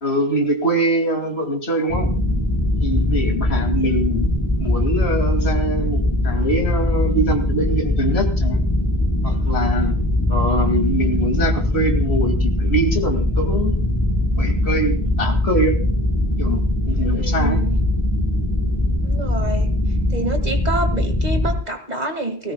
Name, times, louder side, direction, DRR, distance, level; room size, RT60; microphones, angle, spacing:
voice 1, 0.0-2.1 2.8-4.3 4.6-8.6 9.2-9.9 10.3-13.8 14.3-15.8 16.4-17.6, right 1 dB, 65° left, 5 dB, 2.6 m, -23 dB
sound 1, 1.9-21.5, left 1 dB, 20° left, 4.5 m, -21 dB
voice 2, 17.1-17.8 19.0-19.7 20.1-22.5, right 2 dB, 35° right, 6 dB, 2.1 m, -27 dB
19.0 x 17.0 x 2.3 m, 0.41 s
omnidirectional pair, 1.2 m